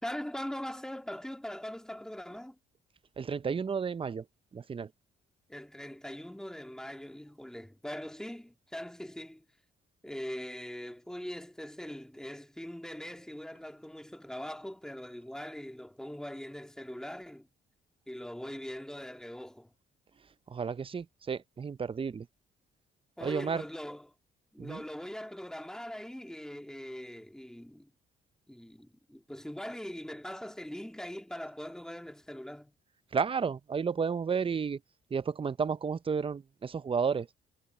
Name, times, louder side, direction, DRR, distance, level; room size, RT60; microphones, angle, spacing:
voice 1, 0.0-2.6 5.5-9.4 10.0-17.5 18.1-19.7 23.2-24.1 24.5-27.9 28.5-32.7, equal, 5° left, 1.9 m, -41 dB
voice 2, 3.2-4.2 4.5-4.9 20.5-22.3 23.2-23.6 24.6-24.8 33.1-34.8 35.1-37.3, right 6 dB, 25° right, 0.5 m, -32 dB
cardioid pair, 90°, 20 cm